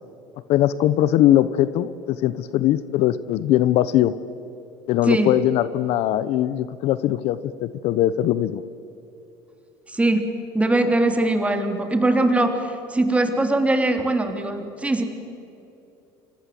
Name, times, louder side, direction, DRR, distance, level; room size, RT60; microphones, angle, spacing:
voice 1, 0.5-4.1 4.9-8.6, left 13 dB, 60° left, 15 dB, 1.0 m, -20 dB
voice 2, 9.9-10.3 10.5-15.0, right 2 dB, 10° right, 5 dB, 3.3 m, -21 dB
29.5 x 25.0 x 7.8 m, 2.9 s
supercardioid pair, 115°, 12 cm